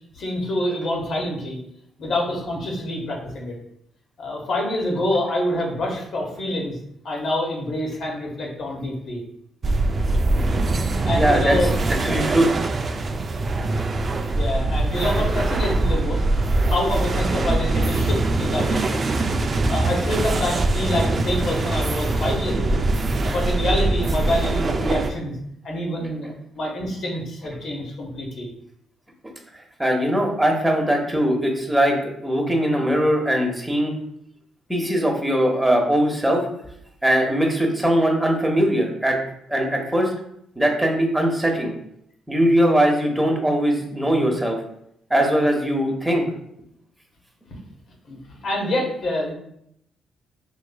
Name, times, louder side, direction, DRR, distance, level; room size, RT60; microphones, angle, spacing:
voice 1, 0.1-1.6 2.0-3.6 4.2-6.8 7.0-9.2 11.0-11.7 14.3-16.2 16.7-22.8 23.2-25.4 25.6-28.5 47.5-47.6 48.1-49.3, left 1 dB, 60° left, -1 dB, 1.3 m, -26 dB
sound 1, 9.6-25.1, right 2 dB, 40° right, 0.4 m, -22 dB
voice 2, 11.1-11.6 11.9-12.5 29.2-29.3 29.8-32.0 32.2-33.9 34.7-36.5 37.0-39.2 39.5-40.1 40.6-41.7 42.3-44.6 45.1-46.2, equal, 10° right, 1 dB, 1.0 m, -20 dB
5.3 x 3.1 x 2.2 m, 0.74 s
cardioid pair, 90°, 0 cm